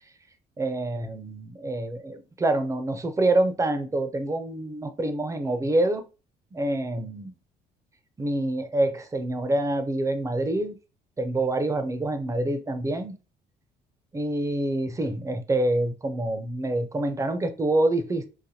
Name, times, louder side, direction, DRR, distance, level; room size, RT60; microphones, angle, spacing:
voice 1, 0.6-6.0 6.5-7.3 8.2-10.8 11.2-13.1 14.1-18.3, right 1 dB, 20° right, 0.5 m, -26 dB
4.0 x 2.5 x 2.7 m
cardioid pair, 110°, 17 cm